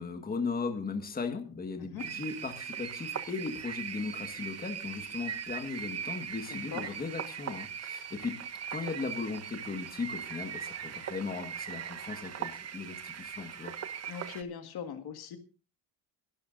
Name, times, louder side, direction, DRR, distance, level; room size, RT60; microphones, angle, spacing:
voice 1, 0.0-13.7, left 4 dB, 20° left, 5 dB, 1.7 m, -37 dB
sound 1, 2.0-14.4, right 8 dB, 35° right, 1.0 m, -40 dB
voice 2, 6.5-6.8 14.1-15.4, left 7 dB, 55° left, 7 dB, 1.9 m, -40 dB
22.0 x 12.5 x 2.6 m, 0.35 s
cardioid pair, 125°, 45 cm